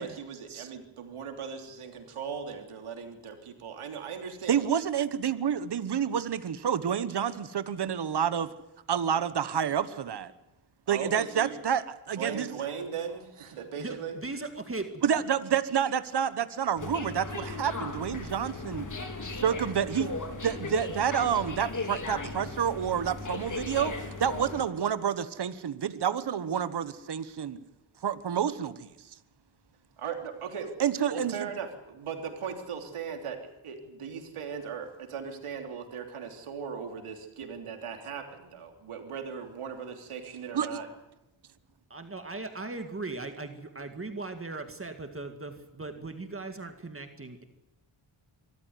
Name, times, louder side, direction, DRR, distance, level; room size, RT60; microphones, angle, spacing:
voice 1, 0.0-4.6 10.9-11.6 12.2-14.2 30.0-30.7 31.1-40.9, right 6 dB, 90° right, 4 dB, 3.3 m, -38 dB
voice 2, 4.5-8.5 8.9-10.3 10.9-12.5 15.0-18.9 19.4-20.1 20.4-23.9 24.2-27.6 28.0-28.9 30.8-31.5 40.5-40.7, right 8 dB, 55° right, 13 dB, 1.3 m, -29 dB
voice 3, 13.8-15.1 41.9-47.4, right 3 dB, 25° right, 6 dB, 2.1 m, -38 dB
sound 1, 16.8-24.6, left 3 dB, 40° left, 3.3 m, -37 dB
24.0 x 14.5 x 9.5 m, 0.97 s
cardioid pair, 90°, 49 cm